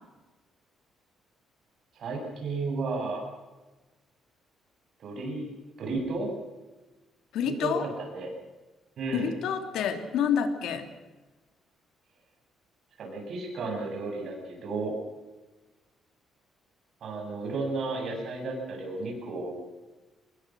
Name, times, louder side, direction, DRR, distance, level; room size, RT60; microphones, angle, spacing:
voice 1, 1.9-3.2 5.0-5.5 5.8-6.3 7.4-8.3 9.0-9.4 13.0-15.0 17.0-19.6, right 3 dB, 50° right, 1 dB, 7.9 m, -33 dB
voice 2, 7.3-7.9 9.1-10.9, left 7 dB, 80° left, 7 dB, 3.0 m, -28 dB
25.5 x 21.0 x 6.4 m, 1.2 s
cardioid pair, 175°, 0 cm